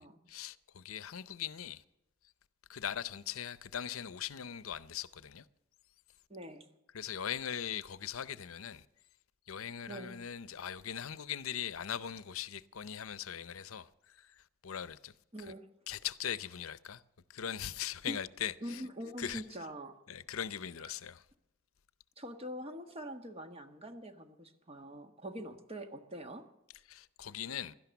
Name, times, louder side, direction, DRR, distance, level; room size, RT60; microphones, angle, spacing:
voice 1, 0.3-1.8 2.7-5.4 6.9-8.8 9.5-14.3 14.6-15.1 15.9-17.0 17.3-18.8 19.2-19.4 20.1-21.2 26.9-27.7, left 9 dB, 80° left, 0.6 m, -40 dB
voice 2, 6.3-6.7 9.9-10.2 15.3-15.7 18.1-18.2 18.6-19.9 22.2-26.4, equal, 30° right, 1.5 m, -44 dB
16.5 x 12.0 x 7.0 m
head